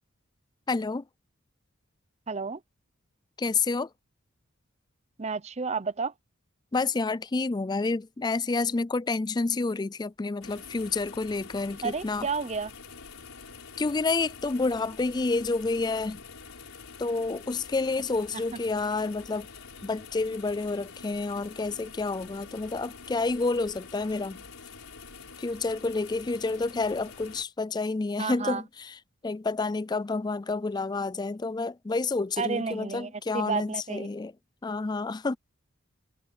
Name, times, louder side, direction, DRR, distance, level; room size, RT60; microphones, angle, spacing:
voice 1, 0.7-1.0 3.4-3.9 6.7-12.3 13.8-16.2 17.0-19.5 19.8-24.4 25.4-29.0 29.2-34.3 34.6-35.4, left 3 dB, 20° left, 0.3 m, -29 dB
voice 2, 2.3-2.6 5.2-6.1 11.8-12.7 18.3-18.4 28.2-28.6 32.4-34.1, right 5 dB, 30° right, 0.6 m, -31 dB
sound 1, 10.4-27.4, left 5 dB, 85° left, 4.9 m, -46 dB
head